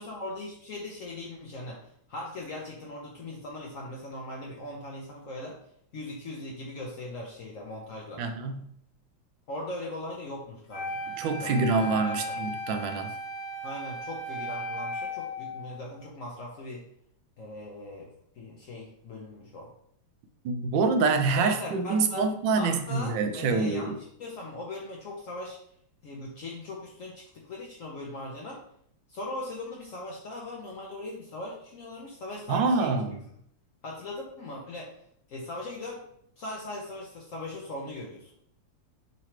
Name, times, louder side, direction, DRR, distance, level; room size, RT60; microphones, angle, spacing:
voice 1, 0.0-1.8 2.1-5.6 5.9-8.2 9.5-11.1 11.4-12.4 13.6-16.8 17.4-18.1 18.4-19.7 21.3-22.3 22.6-25.6 26.0-28.6 29.1-33.0 33.8-34.9 35.3-36.0 36.4-38.3, left 2 dB, 90° left, -2 dB, 0.7 m, -39 dB
voice 2, 8.2-8.7 11.2-13.1 20.4-24.0 32.5-33.2, right 4 dB, 75° right, 7 dB, 1.2 m, -26 dB
Wind instrument woodwind instrument, 10.7-15.8, left 1 dB, 55° left, 1.2 m, -36 dB
3.8 x 3.1 x 4.3 m, 0.68 s
omnidirectional pair, 2.3 m